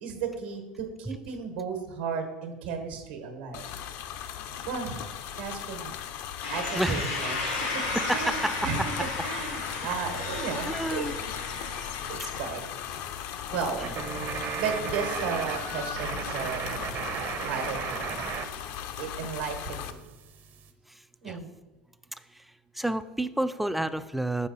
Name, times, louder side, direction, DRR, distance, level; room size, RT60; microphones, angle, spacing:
voice 1, 0.0-3.6 4.7-5.0 5.4-6.0 6.5-7.4 8.1-8.9 9.2-11.1 12.1-12.6 13.5-13.9 14.6-18.2 19.0-20.0 21.2-21.5, right 6 dB, 85° right, 5 dB, 1.2 m, -34 dB
sound 1, 3.5-19.9, left 9 dB, 60° left, 0.5 m, -37 dB
sound 2, 6.4-12.5, left 3 dB, 80° left, 1.7 m, -34 dB
voice 2, 6.8-7.2 8.1-8.4 10.7-11.2 13.8-13.9 20.9-21.4 22.3-22.5 22.7-24.5, right 1 dB, ahead, 11 dB, 0.3 m, -30 dB
sound 3, 13.8-18.5 18.7-20.7, right 7 dB, 50° right, 0.6 m, -35 dB
6.2 x 4.8 x 4.1 m, 1.2 s
hypercardioid pair, 90°, 5 cm